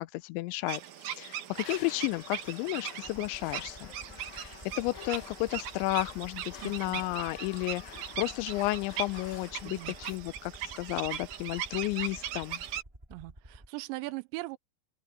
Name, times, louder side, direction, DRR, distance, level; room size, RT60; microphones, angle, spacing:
voice 1, 0.0-3.9 4.3-12.6, left 20 dB, 90° left, 3.0 m, -33 dB
sound 1, 0.7-12.8, right 10 dB, 65° right, 2.0 m, -40 dB
sound 2, 1.5-10.2, left 12 dB, 65° left, 2.6 m, -50 dB
Aircraft, 3.0-13.7, right 1 dB, 5° right, 3.9 m, -52 dB
voice 2, 6.6-7.0 9.6-9.9 13.1-14.6, right 21 dB, 90° right, 2.9 m, -40 dB
open air
omnidirectional pair, 5.2 m